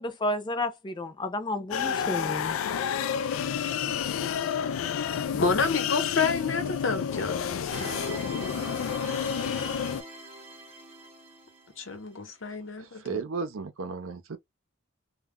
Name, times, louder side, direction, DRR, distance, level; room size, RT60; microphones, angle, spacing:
voice 1, 0.0-2.6, left 1 dB, 25° left, 0.5 m, -31 dB
sound 1, 1.7-10.0, left 8 dB, 90° left, 0.3 m, -30 dB
voice 2, 5.4-7.9 11.8-13.2, left 4 dB, 70° left, 0.9 m, -29 dB
sound 2, 7.7-11.8, right 2 dB, 30° right, 0.7 m, -42 dB
voice 3, 12.8-14.4, right 4 dB, 85° right, 0.6 m, -35 dB
2.2 x 2.1 x 3.6 m
head